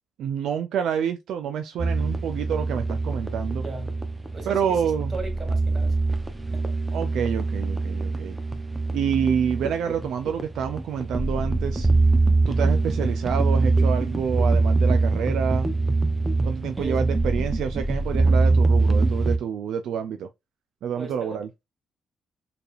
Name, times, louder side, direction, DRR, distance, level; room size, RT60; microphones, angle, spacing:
voice 1, 0.2-3.6 4.5-5.1 6.9-8.4 8.9-11.9 12.5-15.8 16.4-20.3 20.8-21.5, right 8 dB, 75° right, 0.4 m, -28 dB
sound 1, 1.8-19.4, right 3 dB, 20° right, 0.8 m, -23 dB
voice 2, 3.6-4.0 4.3-6.0 6.5-6.7 16.7-17.0 21.0-21.4, right 3 dB, 40° right, 2.5 m, -37 dB
4.7 x 3.3 x 2.5 m
cardioid pair, 90°, 0 cm